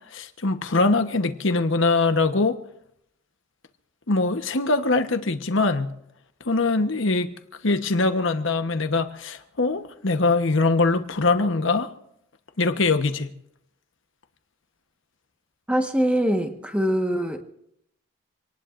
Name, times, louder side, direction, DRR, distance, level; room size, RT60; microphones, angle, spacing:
voice 1, 0.1-2.6 4.1-5.9 6.4-7.3 7.6-11.9 12.6-13.3, left 3 dB, 60° left, 1.1 m, -22 dB
voice 2, 15.7-17.4, equal, 5° right, 1.4 m, -23 dB
27.0 x 19.0 x 2.6 m
head